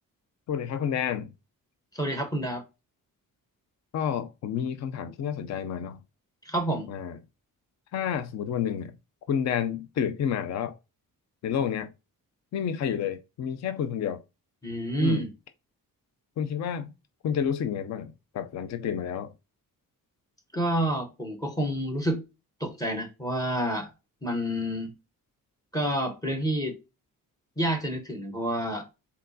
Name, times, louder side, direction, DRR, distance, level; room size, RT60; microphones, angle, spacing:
voice 1, 0.5-1.3 3.9-6.0 6.9-7.2 7.9-8.9 9.3-10.8 11.4-11.9 12.5-14.2 15.0-15.3 16.4-16.9 17.2-19.3, left 8 dB, 50° left, 0.5 m, -30 dB
voice 2, 1.9-2.6 6.4-6.9 14.6-15.3 20.5-22.2 22.6-23.9 24.2-24.9 25.7-26.8 27.6-29.0, right 1 dB, 10° left, 0.8 m, -28 dB
4.3 x 4.0 x 2.6 m
wide cardioid pair, 180°, 36 cm